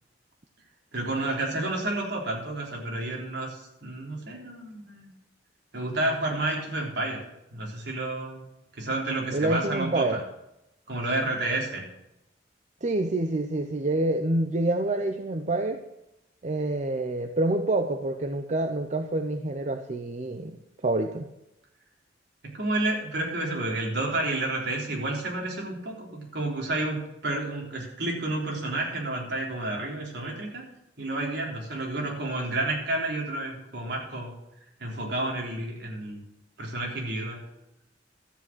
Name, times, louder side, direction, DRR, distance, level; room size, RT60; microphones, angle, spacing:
voice 1, 0.9-5.1 5.7-7.2 7.5-8.4 8.7-10.2 10.9-11.9 22.4-30.6 31.0-34.3 34.8-36.2 36.6-37.4, right 2 dB, 65° right, -1 dB, 3.7 m, -30 dB
voice 2, 9.3-10.2 12.8-15.8 16.4-20.6 20.8-21.3, right 2 dB, 40° right, 6 dB, 0.7 m, -27 dB
13.0 x 8.7 x 6.2 m, 0.89 s
head